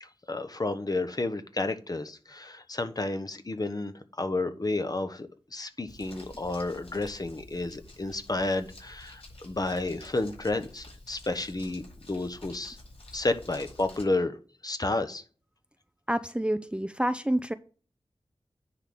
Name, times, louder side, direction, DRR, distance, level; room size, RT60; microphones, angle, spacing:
voice 1, 0.0-12.8 13.1-14.4 14.6-15.2, left 2 dB, 40° left, 9 dB, 1.0 m, -31 dB
Crumpling crinkling, 5.9-14.0, left 1 dB, 75° left, 4.6 m, -50 dB
voice 2, 16.1-17.5, right 1 dB, 10° right, 11 dB, 0.5 m, -28 dB
10.0 x 3.6 x 5.8 m, 0.40 s
wide cardioid pair, 55°, 10 cm